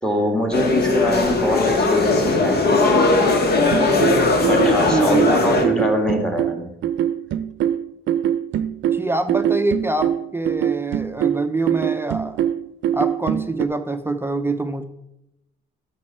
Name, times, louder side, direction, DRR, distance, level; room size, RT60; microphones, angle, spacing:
voice 1, 0.0-2.6 4.4-6.7, equal, 5° left, 3 dB, 2.1 m, -23 dB
sound 1, 0.5-5.6, left 3 dB, 55° left, 1.6 m, -18 dB
sound 2, 3.7-13.7, right 10 dB, 75° right, 0.6 m, -23 dB
voice 2, 4.8-5.4 8.9-12.4 12.9-14.8, right 2 dB, 10° right, 7 dB, 0.6 m, -24 dB
11.0 x 7.4 x 4.3 m, 0.86 s
cardioid pair, 90°, 20 cm